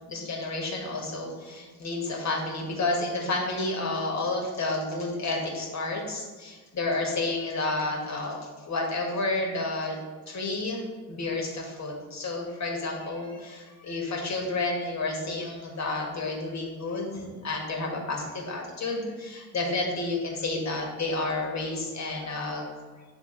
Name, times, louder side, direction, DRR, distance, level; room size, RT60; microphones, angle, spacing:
voice 1, 0.1-8.4 8.7-10.0 10.3-10.8 11.1-22.7, left 2 dB, 35° left, 0 dB, 1.8 m, -30 dB
7.1 x 3.5 x 3.9 m, 1.4 s
hypercardioid pair, 70°, 46 cm